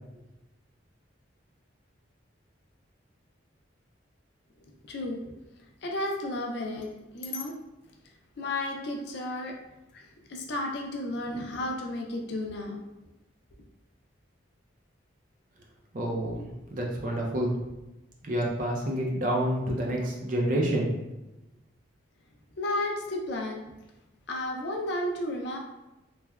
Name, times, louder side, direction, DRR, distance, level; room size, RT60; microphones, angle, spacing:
voice 1, 4.6-5.2 5.8-6.9 7.1-7.6 8.4-9.5 9.9-12.8 22.6-23.7 24.3-25.6, left 1 dB, 60° left, 1 dB, 0.4 m, -33 dB
voice 2, 15.9-17.6 18.2-20.9, right 1 dB, 40° right, -1 dB, 0.5 m, -28 dB
3.1 x 2.1 x 2.3 m, 0.98 s
head